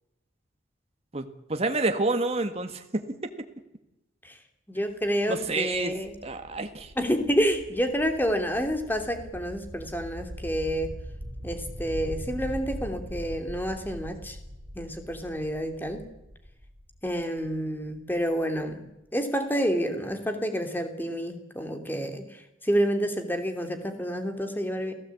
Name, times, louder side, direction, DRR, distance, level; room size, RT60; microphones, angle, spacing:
voice 1, 1.5-3.1 5.3-6.9, right 2 dB, 35° right, 6 dB, 1.7 m, -28 dB
voice 2, 4.7-6.1 7.0-10.9 11.4-14.4 14.7-16.0 17.0-18.8 19.1-22.2 22.6-24.9, equal, 10° left, 6 dB, 2.8 m, -28 dB
sound 1, 4.9-18.6, equal, 65° right, 6.8 m, -42 dB
29.0 x 16.0 x 8.5 m, 0.92 s
head